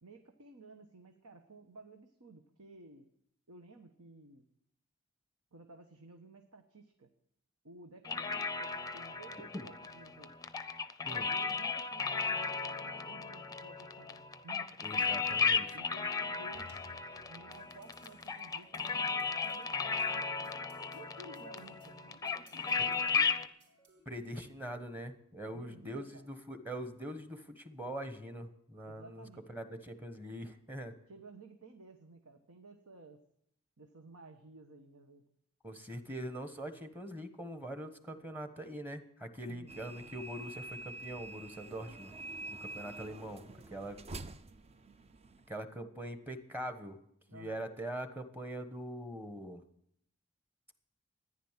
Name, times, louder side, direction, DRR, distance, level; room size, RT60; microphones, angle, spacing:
voice 1, 0.0-3.1 3.5-4.5 5.5-7.1 7.6-10.4 11.1-15.1 15.7-16.7 17.3-20.5 20.9-23.5 25.5-26.3 28.8-29.7 31.1-33.2 33.8-35.2 39.5-39.8 47.3-47.7, right 3 dB, 85° right, 5 dB, 1.2 m, -54 dB
sound 1, 8.1-23.5, left 5 dB, 15° left, 0.6 m, -35 dB
voice 2, 14.8-15.8 22.8-22.9 24.1-30.9 35.6-42.1 42.5-44.0 45.5-47.0 47.3-49.6, right 1 dB, 10° right, 7 dB, 1.2 m, -43 dB
sound 2, 16.5-24.1, equal, 55° right, 3.5 m, -61 dB
sound 3, 39.7-45.5, right 2 dB, 30° right, 0.5 m, -47 dB
14.0 x 10.5 x 7.4 m, 0.74 s
head